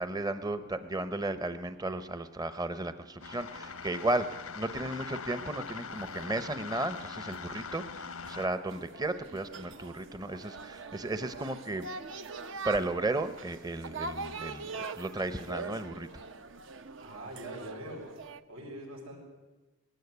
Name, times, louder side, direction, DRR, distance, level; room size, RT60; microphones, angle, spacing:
voice 1, 0.0-4.3 4.5-11.9 12.6-16.2, right 2 dB, 20° right, 11 dB, 0.8 m, -34 dB
sound 1, 3.2-8.5, left 5 dB, 90° left, 1.1 m, -42 dB
sound 2, 3.5-18.4, right 4 dB, 60° right, 1.0 m, -44 dB
voice 2, 17.0-19.2, right 1 dB, 90° right, -3 dB, 7.0 m, -44 dB
20.5 x 17.0 x 9.5 m, 1.1 s
head